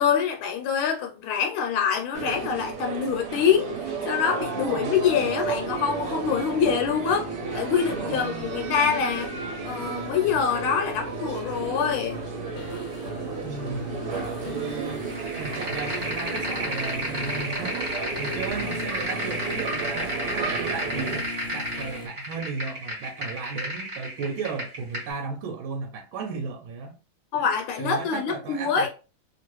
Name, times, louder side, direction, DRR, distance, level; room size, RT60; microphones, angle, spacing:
voice 1, 0.0-3.8 4.1-9.3 9.6-12.2 27.3-28.9, left 7 dB, 80° left, 1.4 m, -25 dB
sound 1, 2.1-21.2, right 5 dB, 55° right, 1.1 m, -33 dB
voice 2, 4.5-5.3 7.9-8.5 13.4-14.0 14.4-15.1 15.4-27.0 27.8-28.9, right 4 dB, 75° right, 1.4 m, -35 dB
sound 2, 5.0-22.1, left 2 dB, 55° left, 1.1 m, -39 dB
sound 3, 15.1-25.1, equal, 25° right, 1.3 m, -32 dB
3.0 x 2.9 x 3.0 m
omnidirectional pair, 2.4 m